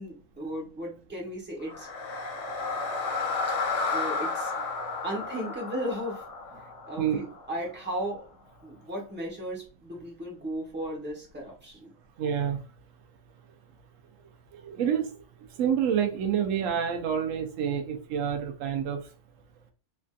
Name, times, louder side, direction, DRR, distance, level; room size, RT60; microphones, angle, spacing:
voice 1, 0.0-1.9 3.9-4.5 5.0-6.2 6.6-8.3 8.6-11.9, equal, 10° right, 0.9 m, -35 dB
sound 1, 1.6-7.8, left 4 dB, 70° left, 1.0 m, -32 dB
voice 2, 12.2-12.6 14.5-15.2 15.6-19.0, right 8 dB, 90° right, 1.0 m, -28 dB
3.4 x 2.5 x 2.2 m
omnidirectional pair, 1.3 m